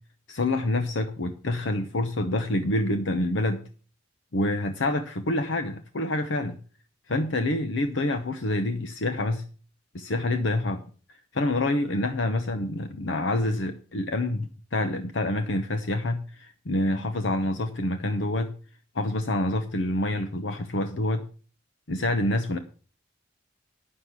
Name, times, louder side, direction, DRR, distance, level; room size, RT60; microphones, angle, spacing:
voice 1, 0.3-3.6 4.3-6.6 7.1-9.4 9.9-10.8 11.3-18.5 18.9-21.2 21.9-22.6, left 1 dB, 80° left, 9 dB, 0.9 m, -27 dB
9.6 x 6.5 x 7.3 m, 0.40 s
head